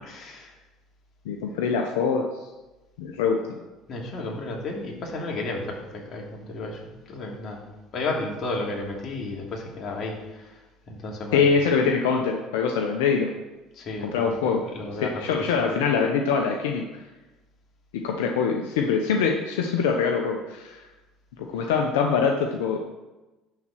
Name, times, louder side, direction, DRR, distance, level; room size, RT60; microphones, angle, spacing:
voice 1, 0.0-0.6 3.9-7.7 7.9-11.5 13.7-14.4 14.7-15.2, left 2 dB, 50° left, -1 dB, 2.8 m, -33 dB
voice 2, 1.2-2.3 3.0-3.6 11.3-13.3 14.0-14.6 15.0-16.9 17.9-20.8 21.4-22.8, left 5 dB, 85° left, 3 dB, 0.9 m, -24 dB
11.0 x 4.4 x 7.6 m, 1.1 s
supercardioid pair, 80°, 0 cm